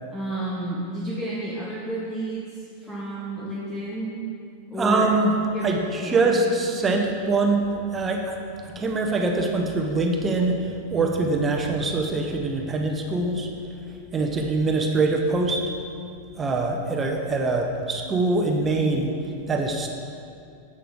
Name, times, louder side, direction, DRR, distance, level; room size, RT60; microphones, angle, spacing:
voice 1, 0.1-4.1 4.7-5.1 5.5-6.3 6.7-6.9, right 1 dB, 5° left, -8 dB, 1.1 m, -31 dB
voice 2, 4.8-5.3 5.6-5.8 6.0-7.7 7.9-8.4 8.8-10.6 10.9-13.5 14.1-15.6 16.4-19.1 19.5-19.9, right 3 dB, 20° right, 2 dB, 0.7 m, -23 dB
7.6 x 6.7 x 3.8 m, 2.4 s
figure-of-eight pair, 90°, 0 cm